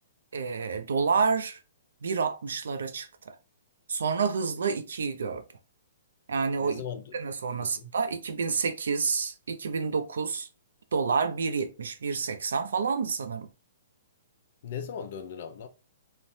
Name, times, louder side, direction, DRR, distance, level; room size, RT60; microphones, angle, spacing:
voice 1, 0.3-1.6 2.0-3.3 3.9-5.4 6.3-6.8 7.1-10.5 10.9-13.5, right 5 dB, 80° right, 0.5 m, -29 dB
voice 2, 6.6-7.1 7.6-7.9 14.6-15.7, left 7 dB, 50° left, 0.5 m, -38 dB
3.1 x 2.0 x 2.6 m
hypercardioid pair, 160°, 0 cm